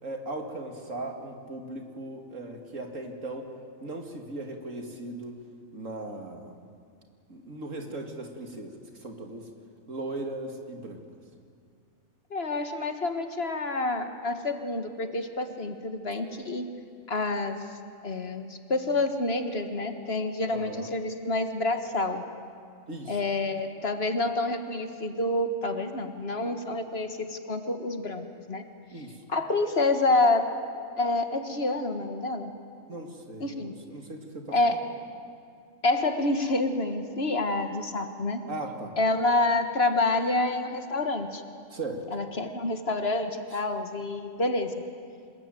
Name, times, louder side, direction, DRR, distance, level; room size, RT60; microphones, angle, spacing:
voice 1, 0.0-3.5 3.8-5.4 5.7-6.6 7.3-9.5 9.9-11.0 20.5-20.9 22.9-23.2 28.9-29.2 32.9-34.8 38.5-39.0 41.7-42.1, right 2 dB, 75° right, 3 dB, 2.8 m, -38 dB
voice 2, 12.3-16.7 17.1-17.6 18.0-22.2 23.1-28.6 29.3-30.5 31.0-32.5 33.4-33.7 34.5-34.8 35.8-38.4 39.0-41.4 42.1-44.7, left 2 dB, 50° left, 7 dB, 1.8 m, -28 dB
26.5 x 21.5 x 9.3 m, 2.3 s
omnidirectional pair, 1.4 m